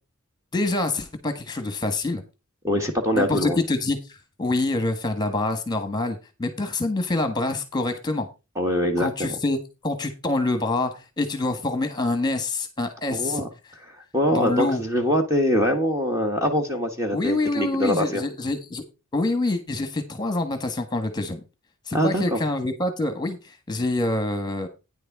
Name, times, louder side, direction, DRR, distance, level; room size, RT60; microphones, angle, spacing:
voice 1, 0.5-2.2 3.1-4.0 4.4-8.3 9.0-13.4 14.3-14.8 17.1-18.8 19.1-21.4 21.9-24.7, left 2 dB, 20° left, 8 dB, 1.5 m, -26 dB
voice 2, 2.6-3.6 8.5-9.3 13.1-13.5 14.1-18.3 21.9-22.4, equal, 15° right, 3 dB, 1.3 m, -23 dB
9.8 x 6.5 x 4.7 m, 0.28 s
head